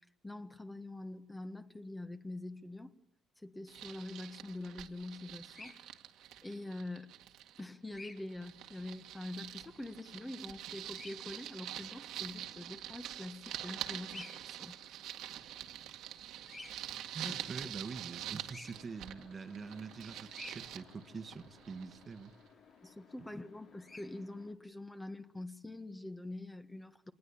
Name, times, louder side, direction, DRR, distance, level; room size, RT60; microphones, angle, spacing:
voice 1, 0.2-2.9 3.4-5.8 6.4-7.1 7.6-14.8 17.2-17.3 22.8-27.1, left 2 dB, 10° left, 1.5 m, -45 dB
sound 1, 3.7-7.6 7.9-22.3, right 11 dB, 80° right, 1.9 m, -46 dB
Bird vocalization bird call bird song, 5.5-5.7 7.9-8.2 10.9-11.1 14.1-14.4 16.4-16.7 18.4-18.7 20.3-20.6 23.8-24.1, left 2 dB, 25° left, 3.3 m, -49 dB
voice 2, 17.1-22.3, right 5 dB, 35° right, 1.5 m, -45 dB
sound 2, 18.7-24.5, left 6 dB, 60° left, 3.4 m, -61 dB
26.5 x 20.0 x 8.7 m
cardioid pair, 95°, 0 cm